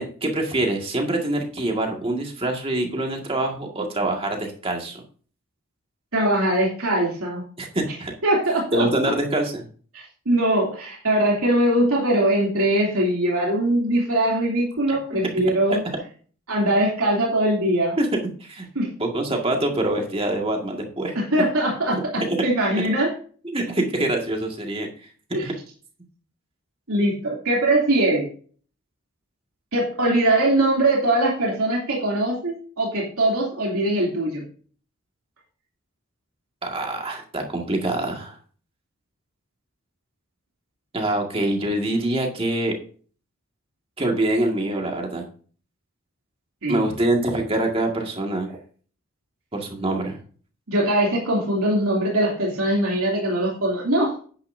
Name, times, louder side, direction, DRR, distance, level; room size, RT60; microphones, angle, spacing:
voice 1, 0.0-5.0 7.6-8.1 8.7-9.6 14.9-15.0 15.4-15.8 18.0-18.7 19.0-21.2 22.2-22.4 23.4-24.9 25.4-25.5 36.6-38.4 40.9-42.7 44.0-45.3 46.7-48.5 49.5-50.2, right 1 dB, 25° right, 2 dB, 2.0 m, -25 dB
voice 2, 6.1-7.4 8.2-8.9 9.9-15.8 16.5-18.0 18.7-18.9 21.1-23.1 25.3-25.5 26.9-28.3 29.7-34.4 46.6-46.8 50.7-54.2, right 1 dB, 85° right, -3 dB, 3.0 m, -21 dB
9.9 x 9.8 x 2.7 m, 0.42 s
head